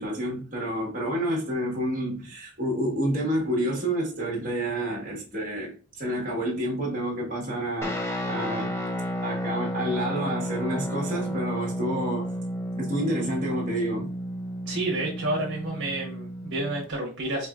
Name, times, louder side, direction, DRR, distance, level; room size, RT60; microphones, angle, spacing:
voice 1, 0.0-8.7 9.2-12.3 12.7-14.1, right 1 dB, 40° right, 1.5 m, -29 dB
Guitar, 7.8-16.9, equal, 15° left, 0.5 m, -32 dB
voice 2, 14.7-17.5, right 2 dB, 60° right, 1.2 m, -30 dB
5.1 x 3.0 x 2.4 m
head